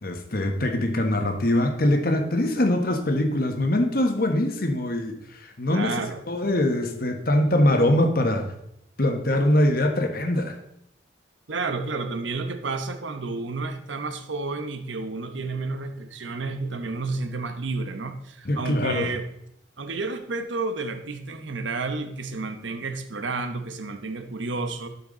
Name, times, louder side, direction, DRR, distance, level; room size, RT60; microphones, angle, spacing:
voice 1, 0.0-6.0 6.3-8.4 9.0-10.6 18.4-19.1, left 1 dB, 50° left, 5 dB, 1.3 m, -23 dB
voice 2, 5.7-6.2 11.5-19.3 19.8-24.9, right 3 dB, 85° right, 8 dB, 1.0 m, -31 dB
12.0 x 5.9 x 3.9 m, 0.78 s
head